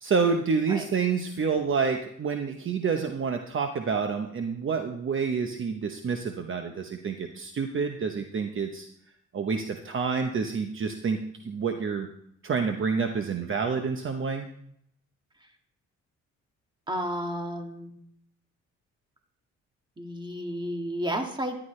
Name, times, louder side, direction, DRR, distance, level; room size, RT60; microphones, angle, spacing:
voice 1, 0.0-8.9 9.3-11.2 11.4-12.1 12.4-14.5, right 5 dB, 40° right, 5 dB, 1.0 m, -28 dB
voice 2, 16.9-17.9 20.0-21.6, equal, 15° right, 3 dB, 2.0 m, -32 dB
14.0 x 11.0 x 3.3 m, 0.72 s
cardioid pair, 90°, 30 cm